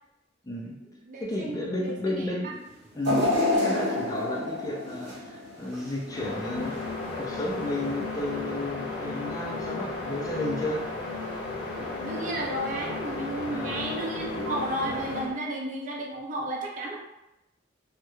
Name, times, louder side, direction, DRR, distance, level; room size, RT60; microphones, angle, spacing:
voice 1, 0.4-0.8 1.2-2.6 2.9-6.8 7.1-10.8 13.5-13.9, left 1 dB, 20° left, -2 dB, 0.3 m, -33 dB
voice 2, 1.0-2.5 11.8-17.0, right 1 dB, 45° right, -1 dB, 0.5 m, -33 dB
sound 1, 3.0-6.2 6.6-6.8 7.8-7.9, left 2 dB, 75° right, 0.8 m, -27 dB
sound 2, 6.1-15.4, left 3 dB, 80° left, 0.6 m, -34 dB
2.2 x 2.0 x 3.0 m, 0.90 s
head